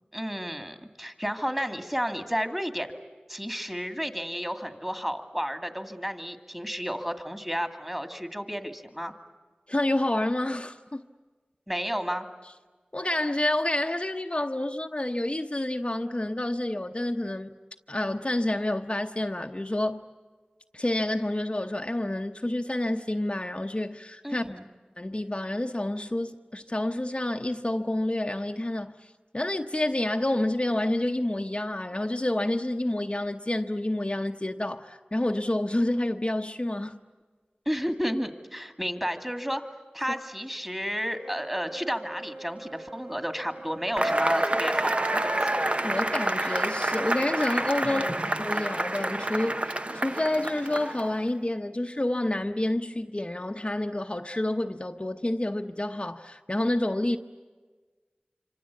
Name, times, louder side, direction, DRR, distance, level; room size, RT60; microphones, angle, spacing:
voice 1, 0.1-2.9 3.3-9.1 11.7-12.3 24.2-24.7 37.7-39.6 39.9-45.4 47.8-48.3, equal, 10° right, 2.3 m, -32 dB
voice 2, 9.7-11.0 12.9-17.5 17.9-20.0 20.7-24.5 25.0-37.0 45.8-48.1 48.4-57.2, left 1 dB, 35° left, 0.9 m, -29 dB
Wind instrument woodwind instrument, 41.1-46.1, right 2 dB, 70° right, 5.8 m, -44 dB
Cheering / Applause / Crowd, 44.0-51.2, right 1 dB, 40° right, 0.8 m, -28 dB
26.5 x 26.0 x 8.4 m
wide cardioid pair, 45°, 3 cm